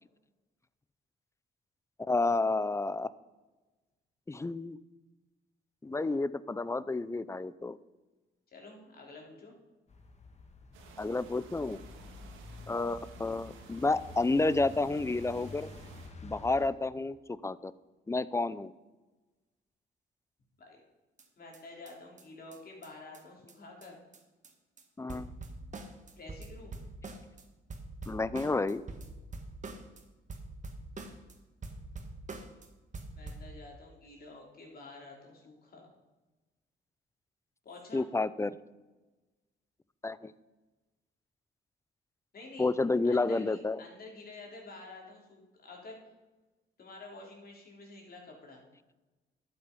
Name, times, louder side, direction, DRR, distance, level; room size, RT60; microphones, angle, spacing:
voice 1, 2.1-3.1 4.3-4.8 5.8-7.8 11.0-11.8 12.7-15.7 16.2-17.7 18.1-18.7 25.0-25.3 28.1-28.8 37.9-38.6 40.0-40.3 42.6-43.8, left 3 dB, 15° left, 17 dB, 0.5 m, -30 dB
voice 2, 8.5-9.5 20.6-20.8 21.4-24.0 26.1-26.8 33.2-35.9 37.6-38.0 42.3-42.7 43.0-46.0 46.8-48.6, left 2 dB, 50° left, -1 dB, 3.6 m, -49 dB
sound 1, 9.9-16.7, left 3 dB, 35° left, 1.6 m, -49 dB
sound 2, 10.7-16.1, right 5 dB, 90° right, 2.0 m, -54 dB
sound 3, 21.2-21.3 21.5-21.6 21.9-22.0 22.2-22.3 22.5-22.6 22.8-22.9 23.1-23.2 23.5-23.6 23.8-23.9 24.1-24.5 24.8-24.9 25.1-27.4 27.7-30.0 30.3-31.3 31.6-32.7 32.9-33.5, right 3 dB, 40° right, 1.6 m, -44 dB
12.0 x 8.7 x 5.4 m, 1.2 s
cardioid pair, 90°, 20 cm